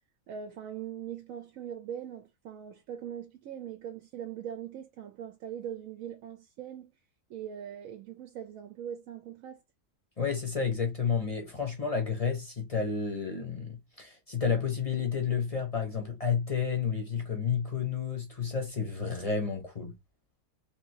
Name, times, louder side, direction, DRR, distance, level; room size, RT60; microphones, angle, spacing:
voice 1, 0.3-6.9 7.3-9.6, right 9 dB, 70° right, 0.9 m, -41 dB
voice 2, 10.2-19.9, left 6 dB, 30° left, 0.7 m, -31 dB
3.3 x 2.8 x 2.8 m
omnidirectional pair, 1.6 m